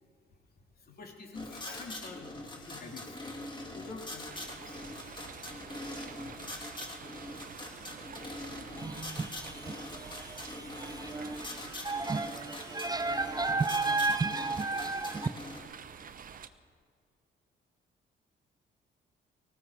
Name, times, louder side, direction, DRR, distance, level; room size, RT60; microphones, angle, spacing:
voice 1, 0.3-3.2 3.7-5.2, left 3 dB, 50° left, 3.1 m, -47 dB
sound 1, 1.3-15.6, left 1 dB, 25° left, 2.6 m, -43 dB
sound 2, 4.3-16.5, right 7 dB, 45° right, 0.9 m, -48 dB
voice 2, 8.8-15.3, right 3 dB, 20° right, 0.5 m, -33 dB
19.0 x 15.0 x 4.9 m
cardioid pair, 90°, 20 cm